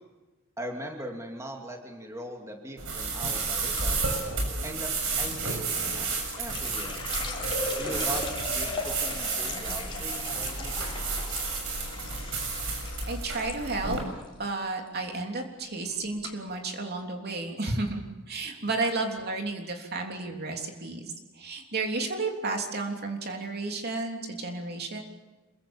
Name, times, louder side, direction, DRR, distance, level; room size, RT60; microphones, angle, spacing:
voice 1, 0.6-4.0 4.6-7.0 7.8-8.2 8.5-11.5 18.7-18.8, right 1 dB, 15° right, 1 dB, 2.8 m, -40 dB
sound 1, 2.8-14.0, right 4 dB, 65° right, 6.9 m, -31 dB
sound 2, 3.8-4.2 5.6-13.6 13.9-14.5 14.8-15.1 15.8-15.9 16.2-16.3, left 3 dB, 25° left, 3.8 m, -38 dB
voice 2, 13.1-14.0 14.4-25.0, right 3 dB, 50° right, 2 dB, 3.3 m, -32 dB
27.5 x 23.5 x 7.3 m, 1.2 s
head